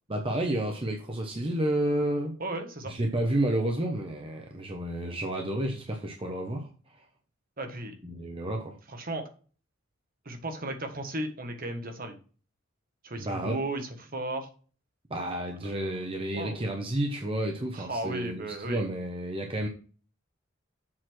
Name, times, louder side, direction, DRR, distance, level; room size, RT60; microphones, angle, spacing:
voice 1, 0.1-2.3 2.9-6.7 8.0-8.7 13.2-13.6 15.1-19.7, right 1 dB, 25° right, 2 dB, 1.1 m, -30 dB
voice 2, 2.4-2.9 7.6-7.9 8.9-9.2 10.2-12.2 13.0-14.5 16.3-16.6 17.7-18.9, right 1 dB, 45° right, 5 dB, 1.5 m, -35 dB
7.6 x 4.2 x 6.2 m, 0.38 s
head